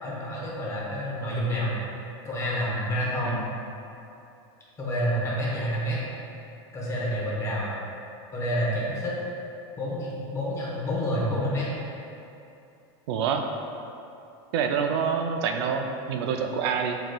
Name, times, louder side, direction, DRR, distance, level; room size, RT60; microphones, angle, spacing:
voice 1, 0.0-1.7 2.2-3.4 4.8-6.0 6.7-7.7 8.3-9.1 9.8-11.7, equal, 20° left, -6 dB, 0.9 m, -28 dB
voice 2, 13.1-13.5 14.5-17.0, right 6 dB, 70° right, 4 dB, 0.4 m, -27 dB
7.5 x 3.0 x 2.2 m, 2.7 s
supercardioid pair, 155°, 14 cm